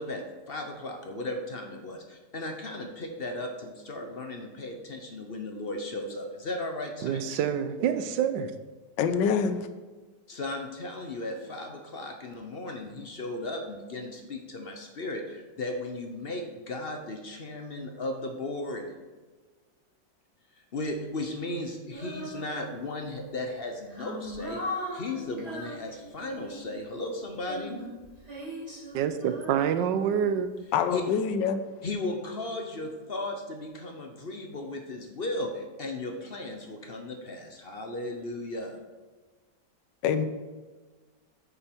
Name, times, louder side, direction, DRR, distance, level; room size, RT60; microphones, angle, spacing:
voice 1, 0.0-7.4 10.3-18.9 20.7-24.6 24.9-27.8 30.9-31.0 31.8-38.7, left 2 dB, 45° left, 0.8 m, -36 dB
voice 2, 7.0-8.5 28.9-30.5, right 8 dB, 80° right, 1.3 m, -27 dB
voice 3, 9.0-9.7 30.7-31.6 40.0-40.3, left 6 dB, 85° left, 1.4 m, -25 dB
Female singing, 21.9-23.0 23.6-26.8 27.4-30.6, equal, 20° right, 2.8 m, -39 dB
9.1 x 6.9 x 4.5 m
omnidirectional pair, 1.9 m